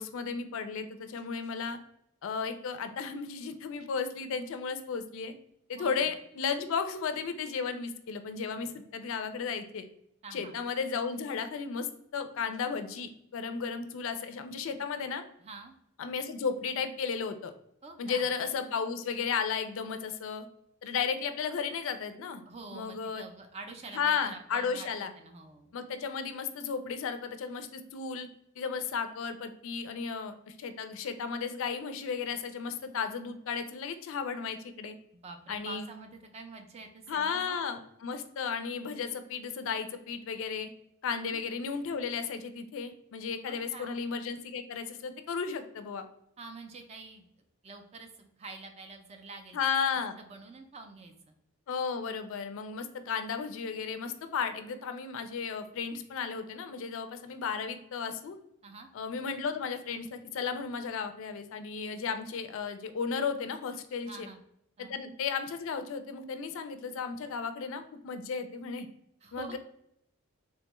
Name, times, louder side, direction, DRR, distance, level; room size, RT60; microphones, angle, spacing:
voice 1, 0.0-1.8 2.2-5.3 5.7-9.9 10.3-15.2 16.0-17.5 18.0-20.5 20.8-22.4 22.7-23.2 23.9-25.1 25.7-28.3 28.6-35.0 35.5-35.9 37.1-40.7 41.0-46.0 49.5-50.2 51.7-58.4 58.9-64.3 64.8-68.9 69.3-69.6, left 6 dB, 60° left, 9 dB, 0.3 m, -34 dB
voice 2, 5.8-6.1 10.2-10.6 15.4-15.7 17.8-18.3 22.5-24.9 25.2-25.7 35.2-37.6 41.1-41.4 43.4-44.0 46.4-47.3 47.6-49.6 50.2-51.4 58.6-58.9 64.0-64.4 64.8-65.0 69.2-69.6, right 3 dB, 30° right, 5 dB, 0.4 m, -47 dB
3.4 x 2.2 x 2.9 m, 0.76 s
head